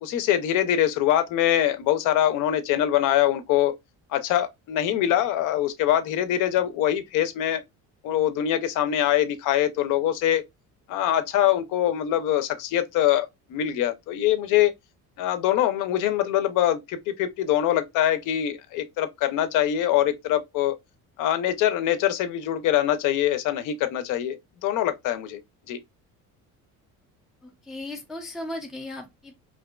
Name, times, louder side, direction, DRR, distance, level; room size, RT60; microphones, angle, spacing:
voice 1, 0.0-3.7 4.1-7.6 8.0-10.4 10.9-14.7 15.2-20.8 21.2-24.4 24.6-25.4 25.7-25.8, left 12 dB, 70° left, 0.5 m, -23 dB
voice 2, 27.4-29.3, left 1 dB, ahead, 0.3 m, -36 dB
2.5 x 2.2 x 2.2 m
cardioid pair, 155°, 32 cm